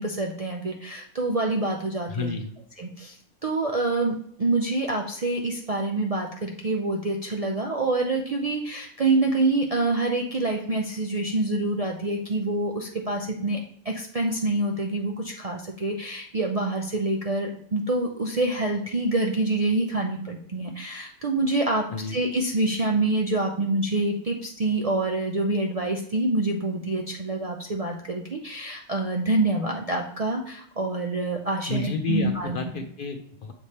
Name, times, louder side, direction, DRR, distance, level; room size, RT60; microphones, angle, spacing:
voice 1, 0.0-2.3 2.8-3.2 3.4-32.6, right 2 dB, 50° right, 1 dB, 0.4 m, -26 dB
voice 2, 2.1-2.5 21.9-22.2 31.7-33.5, left 4 dB, 55° left, 5 dB, 0.6 m, -30 dB
7.0 x 3.3 x 4.2 m, 0.65 s
omnidirectional pair, 1.3 m